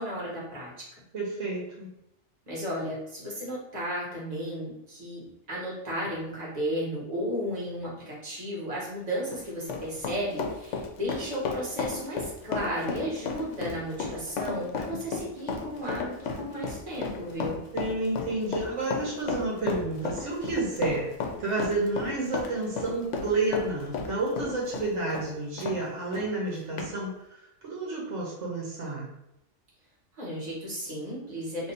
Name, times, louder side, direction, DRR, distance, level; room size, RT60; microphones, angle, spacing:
voice 1, 0.0-1.0 2.5-17.6 30.1-31.7, equal, 35° right, -5 dB, 1.4 m, -34 dB
voice 2, 1.1-1.9 17.7-21.1 21.4-29.1, right 2 dB, 80° right, -4 dB, 1.2 m, -30 dB
Run, 9.1-25.8 26.1-26.3 26.8-26.9, left 5 dB, 80° left, 0.9 m, -33 dB
2.8 x 2.6 x 4.2 m, 0.85 s
omnidirectional pair, 1.2 m